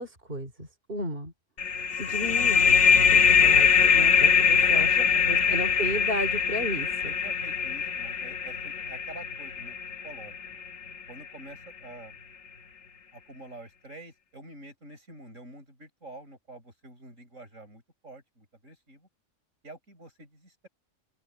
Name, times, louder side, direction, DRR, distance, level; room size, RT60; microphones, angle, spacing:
voice 1, 0.0-1.3 2.0-4.9 5.3-6.9, equal, 45° right, 4.1 m, -34 dB
sound 1, 1.6-10.9, left 6 dB, 65° left, 1.6 m, -22 dB
voice 2, 4.6-5.6 7.0-9.8 10.0-10.6 11.1-12.2 13.1-19.1 19.6-20.7, right 2 dB, 85° right, 8.2 m, -47 dB
open air
omnidirectional pair, 1.3 m